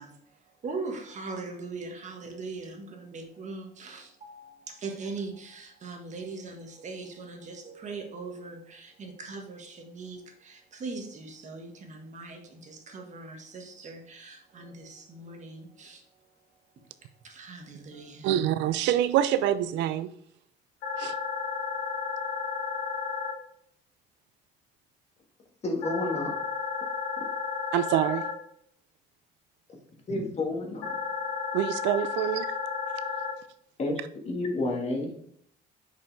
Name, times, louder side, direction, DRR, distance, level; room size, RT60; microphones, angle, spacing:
voice 1, 0.0-16.3 16.8-16.9 17.2-18.4, right 3 dB, 40° right, 1.4 m, -41 dB
voice 2, 18.2-20.1 21.0-21.1 27.7-28.2 31.5-32.5, right 11 dB, 85° right, 0.5 m, -25 dB
sound 1, 20.8-23.3 25.8-28.3 30.8-33.3, left 5 dB, 90° left, 1.9 m, -32 dB
voice 3, 25.6-26.3 30.1-30.9 33.8-34.0 34.3-35.1, left 2 dB, 35° left, 1.6 m, -30 dB
6.1 x 5.5 x 3.3 m
cardioid pair, 120°, 18 cm